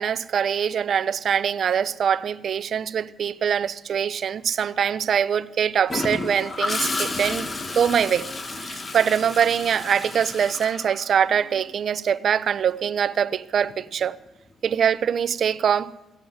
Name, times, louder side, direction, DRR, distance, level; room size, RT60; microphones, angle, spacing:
voice 1, 0.0-7.5 7.7-8.3 8.6-14.2 14.6-15.9, right 8 dB, 60° right, 0.6 m, -23 dB
Gurgling / Toilet flush, 5.9-11.6 13.6-13.9, left 2 dB, 30° left, 1.5 m, -31 dB
16.0 x 7.9 x 9.3 m
cardioid pair, 90°, 0 cm